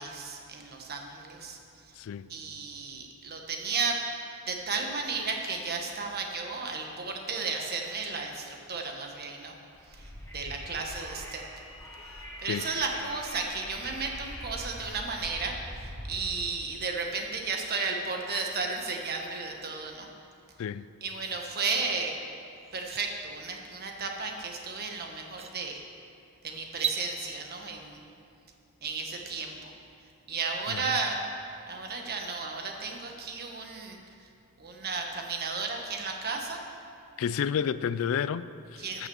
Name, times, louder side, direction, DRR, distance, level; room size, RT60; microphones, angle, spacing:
voice 1, 0.0-1.6 1.8-1.9 2.3-4.0 4.5-9.5 9.9-11.4 12.1-20.1 21.0-22.1 22.7-25.8 26.4-28.0 28.8-29.7 30.3-31.2 31.7-34.3 34.6-36.6 38.8-39.1, right 4 dB, 45° right, 1.3 m, -34 dB
voice 2, 1.9-2.3 12.5-12.6 20.6-20.9 30.7-31.0 37.2-39.1, left 7 dB, 65° left, 0.3 m, -31 dB
Wind, 9.7-16.4, equal, 15° left, 2.0 m, -43 dB
sound 1, 22.1-22.2 22.6-23.0 24.7-24.8 25.3-25.5 26.7-27.0, right 7 dB, 30° right, 0.6 m, -34 dB
13.5 x 6.0 x 7.0 m
head